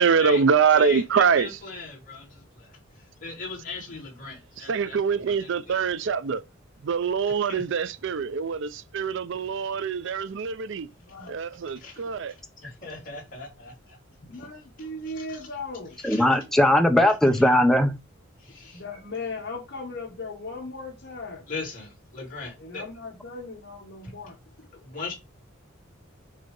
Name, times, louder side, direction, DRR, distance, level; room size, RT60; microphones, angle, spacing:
voice 1, 0.0-1.5 4.7-6.4 6.8-10.9 11.3-12.3, right 6 dB, 65° right, 0.4 m, -24 dB
voice 2, 0.8-6.0 7.3-7.6 11.7-12.0 12.6-14.0 14.3-14.4 14.8-15.5 16.0-16.4 17.3-17.4 18.4-19.0 21.5-22.8 24.8-25.1, left 4 dB, 45° left, 3.2 m, -39 dB
voice 3, 11.0-11.3 14.2-16.0 18.7-21.4 22.6-24.4, left 3 dB, 60° left, 1.6 m, -37 dB
voice 4, 16.0-17.9, left 1 dB, ahead, 0.7 m, -19 dB
6.5 x 2.8 x 5.2 m
head